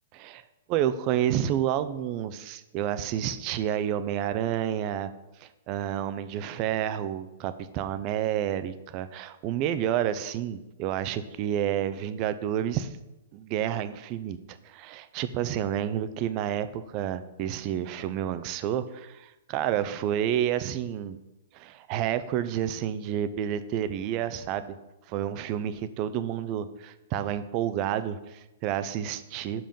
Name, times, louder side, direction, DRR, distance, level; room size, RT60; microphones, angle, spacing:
voice 1, 0.7-5.1 5.4-12.9 13.3-21.2 21.5-24.8 25.1-29.7, right 10 dB, 40° right, 12 dB, 0.5 m, -30 dB
5.5 x 5.3 x 5.3 m, 0.97 s
hypercardioid pair, 120°, 0 cm